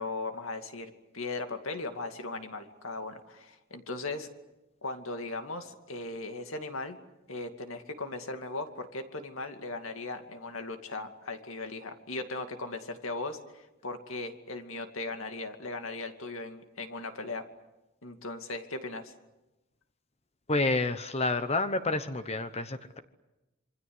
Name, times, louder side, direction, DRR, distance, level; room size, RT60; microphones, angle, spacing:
voice 1, 0.0-4.3 4.8-7.0 7.3-17.4 18.0-19.1, left 3 dB, 70° left, 6 dB, 2.5 m, -38 dB
voice 2, 20.5-23.0, left 2 dB, 30° left, 10 dB, 1.0 m, -29 dB
27.0 x 24.5 x 8.0 m, 1.0 s
head